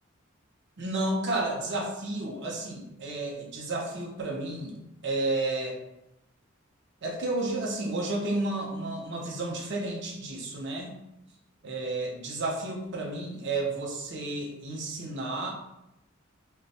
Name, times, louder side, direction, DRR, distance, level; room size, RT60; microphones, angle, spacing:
voice 1, 0.8-4.7 5.0-5.8 7.0-10.9 11.6-15.5, right 2 dB, 55° right, -1 dB, 0.6 m, -31 dB
3.3 x 2.1 x 4.0 m, 0.87 s
head